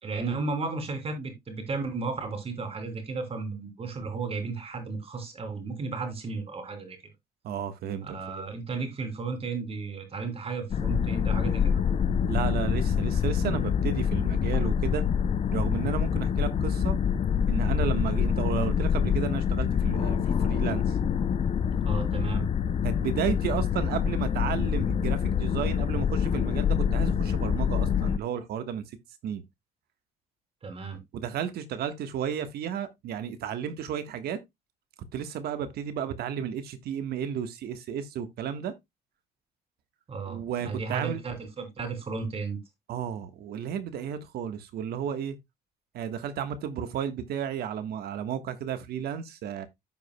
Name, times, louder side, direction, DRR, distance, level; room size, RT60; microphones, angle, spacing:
voice 1, 0.0-7.0 8.0-11.8 21.7-22.5 30.6-31.0 40.1-42.6, right 4 dB, 35° right, 3.2 m, -34 dB
voice 2, 7.4-8.4 12.3-15.0 15.5-17.0 17.5-21.0 22.8-29.0 29.2-29.4 31.1-34.4 35.1-38.7 40.3-41.2 42.9-45.4 45.9-49.7, right 8 dB, 70° right, 1.4 m, -33 dB
sound 1, 10.7-28.2, left 7 dB, 35° left, 0.5 m, -26 dB
15.0 x 5.0 x 2.2 m
cardioid pair, 110°, 17 cm